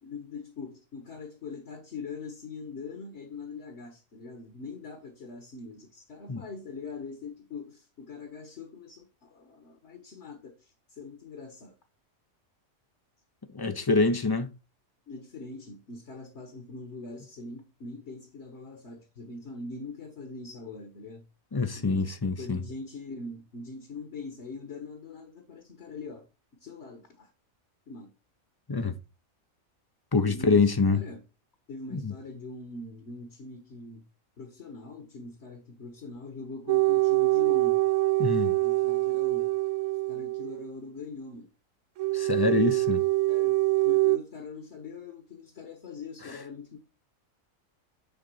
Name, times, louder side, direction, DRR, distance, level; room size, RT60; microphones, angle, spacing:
voice 1, 0.0-11.8 15.1-21.2 21.8-26.3 26.6-27.3 27.9-28.1 30.2-31.2 31.7-34.1 34.4-37.9 38.6-39.6 40.1-41.5 43.3-46.8, left 4 dB, 55° left, 1.8 m, -42 dB
voice 2, 13.5-14.5 21.5-22.6 28.7-29.0 30.1-31.0 31.9-32.1 38.2-38.5 42.1-43.0, left 3 dB, 25° left, 0.5 m, -25 dB
sound 1, 36.7-40.7 42.0-44.2, right 20 dB, 70° right, 0.8 m, -25 dB
10.5 x 4.0 x 5.5 m
omnidirectional pair, 1.5 m